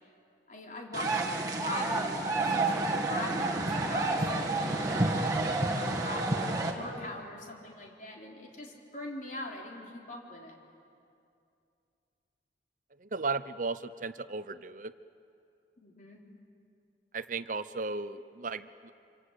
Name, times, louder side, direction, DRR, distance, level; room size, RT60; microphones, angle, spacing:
voice 1, 0.5-10.6 15.8-16.2, left 1 dB, 45° left, -1 dB, 4.1 m, -42 dB
sound 1, 0.9-6.7, right 2 dB, 20° right, 2.2 m, -29 dB
voice 2, 13.0-14.9 17.1-18.9, right 3 dB, 45° right, 14 dB, 0.7 m, -35 dB
26.5 x 26.0 x 8.3 m, 2.5 s
head